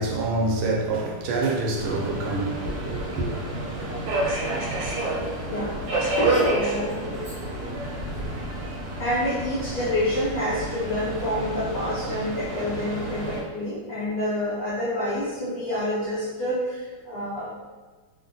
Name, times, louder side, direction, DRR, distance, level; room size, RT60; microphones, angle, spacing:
voice 1, 0.0-3.3, right 2 dB, 80° right, 1.4 m, -26 dB
Subway metro underground, 1.8-13.4, right 1 dB, 65° right, 1.0 m, -29 dB
voice 2, 5.5-7.4 9.0-17.5, equal, 90° left, 0.7 m, -28 dB
3.7 x 2.1 x 2.6 m
omnidirectional pair, 2.3 m